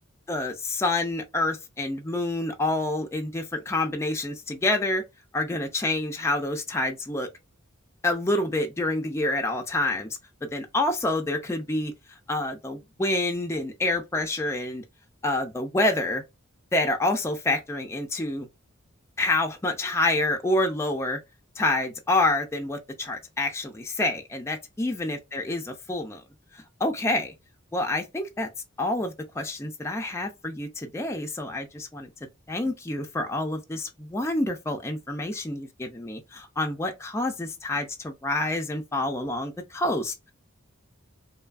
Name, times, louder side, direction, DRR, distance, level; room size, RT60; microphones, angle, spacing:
voice 1, 0.3-5.0 5.3-7.3 8.0-10.2 10.5-11.9 12.3-14.8 15.2-16.2 16.7-18.5 19.2-21.2 21.6-26.2 26.5-27.3 27.7-28.5 28.8-32.1 32.5-40.3, left 2 dB, 15° left, 0.3 m, -27 dB
2.6 x 2.4 x 2.3 m
head